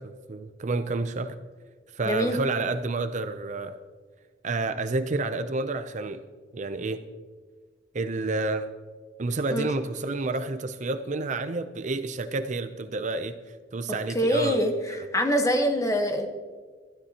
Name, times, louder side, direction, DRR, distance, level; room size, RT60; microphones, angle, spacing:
voice 1, 0.0-1.4 1.9-3.8 4.4-6.2 6.5-7.0 7.9-8.7 9.2-13.4 13.7-14.6, right 3 dB, 45° right, 10 dB, 0.6 m, -29 dB
voice 2, 2.0-2.4 9.5-9.7 14.1-16.3, equal, 20° left, 5 dB, 1.2 m, -24 dB
22.0 x 12.5 x 2.9 m, 1.5 s
head